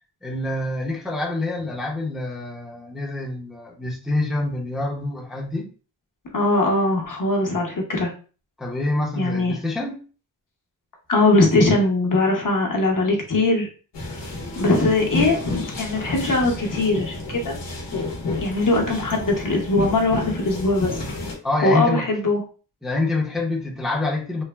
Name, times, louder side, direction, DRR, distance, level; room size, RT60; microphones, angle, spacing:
voice 1, 0.2-5.7 8.6-10.0 21.4-22.1 22.8-24.4, left 2 dB, ahead, 0.6 m, -26 dB
voice 2, 6.3-8.1 9.2-9.6 11.1-13.7 14.6-17.6 18.3-21.0 21.6-22.4, left 2 dB, 50° left, 0.8 m, -21 dB
sound 1, 13.9-21.4, left 2 dB, 85° left, 0.8 m, -30 dB
3.1 x 2.0 x 2.2 m
wide cardioid pair, 70°, 42 cm